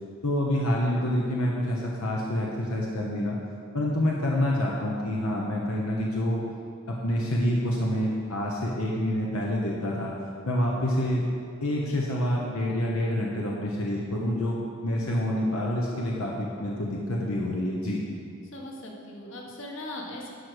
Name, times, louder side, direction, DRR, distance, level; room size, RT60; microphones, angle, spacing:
voice 1, 0.2-3.4 3.7-6.4 6.9-10.1 10.4-11.2 11.6-18.0, left 1 dB, 85° left, -2 dB, 1.1 m, -27 dB
voice 2, 18.5-20.3, left 1 dB, 60° left, -1 dB, 1.5 m, -39 dB
11.5 x 4.9 x 6.3 m, 2.5 s
head